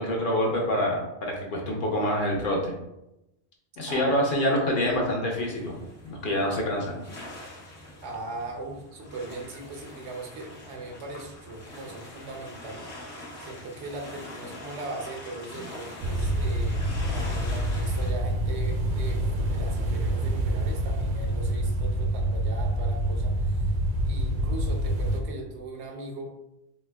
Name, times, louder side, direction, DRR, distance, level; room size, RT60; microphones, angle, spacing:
voice 1, 0.0-2.7 3.8-5.8 6.0-7.0, left 1 dB, 55° left, -1 dB, 0.8 m, -26 dB
voice 2, 3.9-4.6 8.0-13.0 13.4-26.4, right 2 dB, 90° right, 2 dB, 1.0 m, -39 dB
sound 1, 5.3-18.1, left 1 dB, 80° left, 1.2 m, -43 dB
sound 2, 16.0-25.2, right 1 dB, 60° right, 0.6 m, -27 dB
4.3 x 2.7 x 2.2 m, 0.89 s
omnidirectional pair, 1.1 m